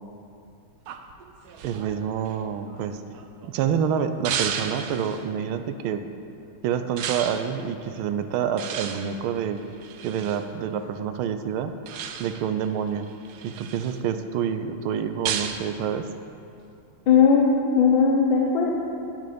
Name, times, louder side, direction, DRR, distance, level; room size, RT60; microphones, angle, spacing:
sound 1, 0.9-3.5 4.2-5.2 7.0-7.5 8.6-10.4 11.9-12.5 13.0-14.0 15.2-15.7, right 7 dB, 70° right, 1.0 m, -33 dB
voice 1, 1.6-3.0 3.5-6.0 6.6-9.6 10.0-11.7 12.2-13.1 13.4-16.1, right 8 dB, 85° right, 9 dB, 1.5 m, -27 dB
voice 2, 17.1-18.7, left 6 dB, 70° left, -1 dB, 1.7 m, -18 dB
10.5 x 9.9 x 5.1 m, 2.6 s
omnidirectional pair, 2.3 m